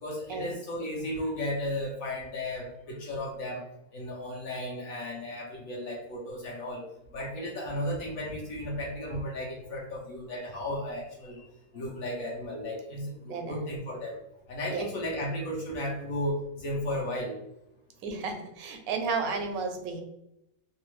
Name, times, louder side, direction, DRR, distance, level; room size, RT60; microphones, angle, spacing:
voice 1, 0.0-3.6 3.9-6.9 7.1-11.5 11.7-14.2 14.5-17.4, left 1 dB, 80° left, -3 dB, 1.1 m, -34 dB
voice 2, 13.3-13.7 14.7-14.8 18.0-20.0, right 4 dB, 75° right, 5 dB, 1.0 m, -33 dB
3.0 x 2.0 x 3.0 m, 0.87 s
omnidirectional pair, 1.5 m